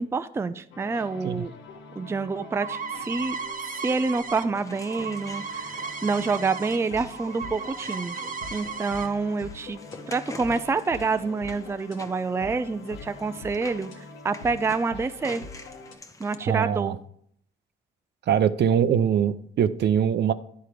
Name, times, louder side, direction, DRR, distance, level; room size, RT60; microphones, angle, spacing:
voice 1, 0.0-1.5 2.0-3.4 3.7-8.2 8.5-15.4 16.2-17.0, right 4 dB, 15° right, 0.4 m, -27 dB
sound 1, 0.7-16.0, left 3 dB, 80° left, 1.3 m, -44 dB
sound 2, 2.0-6.8 7.1-9.1, right 5 dB, 45° right, 0.9 m, -36 dB
sound 3, 4.5-16.3, left 2 dB, 15° left, 0.8 m, -47 dB
voice 2, 16.5-16.9 18.3-20.3, right 8 dB, 60° right, 0.6 m, -22 dB
10.0 x 4.5 x 4.9 m
cardioid pair, 90°, 20 cm